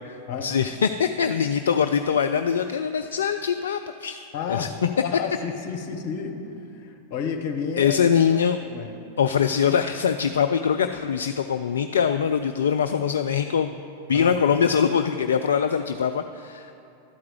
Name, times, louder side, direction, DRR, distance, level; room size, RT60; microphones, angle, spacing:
voice 1, 0.4-4.2 4.5-4.9 7.8-8.6 9.2-13.7 14.1-16.7, left 7 dB, 65° left, 8 dB, 0.3 m, -23 dB
voice 2, 4.3-6.4 6.7-8.0 8.3-8.9 14.1-14.3, left 6 dB, 50° left, 3 dB, 1.1 m, -31 dB
12.0 x 4.8 x 8.0 m, 2.8 s
figure-of-eight pair, 90°, 0 cm